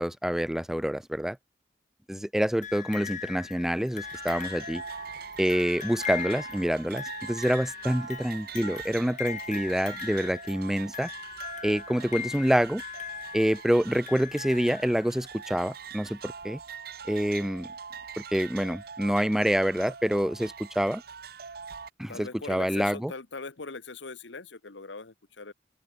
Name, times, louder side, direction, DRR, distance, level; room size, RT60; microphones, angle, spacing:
voice 1, 0.0-1.4 2.1-4.8 5.4-11.1 11.6-12.8 13.3-16.6 17.1-17.7 18.3-21.0 22.0-23.1, equal, ahead, 0.3 m, -27 dB
sound 1, 2.6-15.4 16.4-16.5, left 9 dB, 45° left, 1.7 m, -40 dB
sound 2, 4.0-21.9, right 6 dB, 55° right, 0.9 m, -43 dB
voice 2, 22.1-25.5, left 4 dB, 85° left, 1.4 m, -41 dB
head